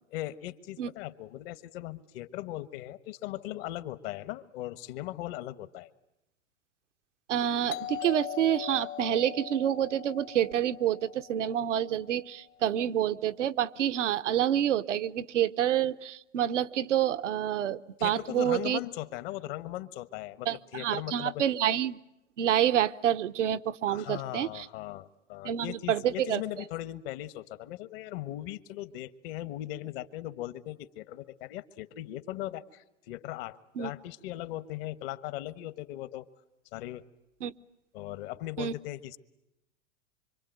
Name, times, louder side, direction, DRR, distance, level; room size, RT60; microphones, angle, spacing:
voice 1, 0.1-5.9 18.0-21.4 23.9-36.3 36.7-37.0 37.9-39.2, left 15 dB, 55° left, 14 dB, 1.4 m, -39 dB
voice 2, 7.3-18.8 20.5-22.0 22.4-24.7 25.4-26.4 33.8-33.9 37.4-37.5 38.6-38.7, right 10 dB, 80° right, 12 dB, 1.0 m, -28 dB
Doorbell, 7.7-12.3, left 12 dB, 40° left, 1.0 m, -41 dB
26.0 x 25.0 x 9.2 m, 0.89 s
hypercardioid pair, 110°, 36 cm